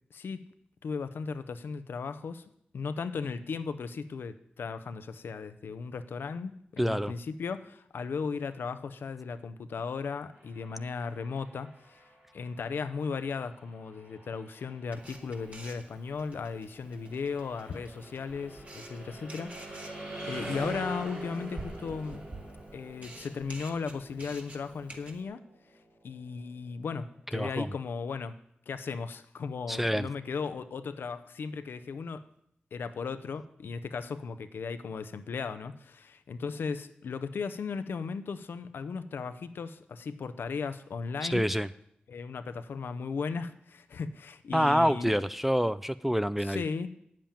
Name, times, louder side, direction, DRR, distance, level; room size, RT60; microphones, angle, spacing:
voice 1, 0.1-0.4 0.8-2.4 2.7-12.0 12.3-22.3 22.7-25.4 26.0-28.4 28.7-32.2 32.7-41.5 42.1-45.2 46.4-46.9, left 5 dB, 90° left, 11 dB, 0.6 m, -36 dB
voice 2, 6.8-7.1 27.3-27.7 29.7-30.1 41.2-41.7 44.5-46.6, equal, 5° right, 13 dB, 0.4 m, -27 dB
sound 1, 10.3-26.2, right 1 dB, 90° right, 4.9 m, -45 dB
Camera, 14.8-25.2, right 2 dB, 45° right, 2.0 m, -49 dB
8.7 x 7.5 x 9.0 m, 0.74 s
cardioid pair, 45°, 4 cm